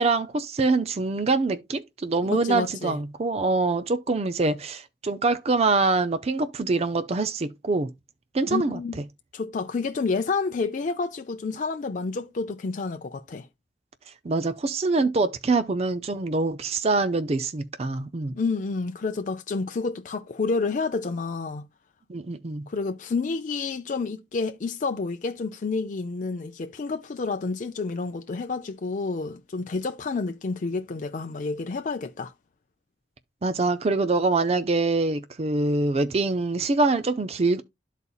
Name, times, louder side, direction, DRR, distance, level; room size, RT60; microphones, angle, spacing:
voice 1, 0.0-7.9 8.3-8.8 14.2-18.4 22.1-22.7 33.4-37.6, right 3 dB, 35° right, 0.5 m, -24 dB
voice 2, 2.2-3.0 8.5-9.0 9.3-13.5 18.3-21.7 22.7-32.3, left 4 dB, 45° left, 0.4 m, -29 dB
12.5 x 4.1 x 2.3 m
head